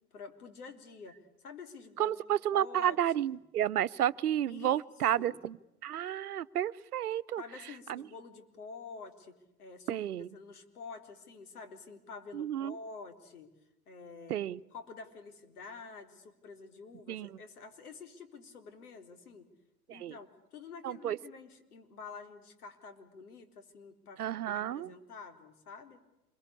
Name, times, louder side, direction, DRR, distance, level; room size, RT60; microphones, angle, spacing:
voice 1, 0.1-2.2 2.5-3.0 4.5-4.8 5.2-5.4 7.4-10.0 10.3-13.5 13.9-14.4 14.7-19.5 19.9-26.0, left 4 dB, 75° left, 7 dB, 3.9 m, -48 dB
voice 2, 2.0-5.6 5.8-7.4 7.9-8.0 9.9-10.3 12.3-12.8 14.3-14.6 17.1-17.3 19.9-20.1 20.8-21.2 24.2-24.9, right 11 dB, 75° right, 13 dB, 0.9 m, -31 dB
27.5 x 22.5 x 8.4 m, 0.91 s
hypercardioid pair, 100°, 45 cm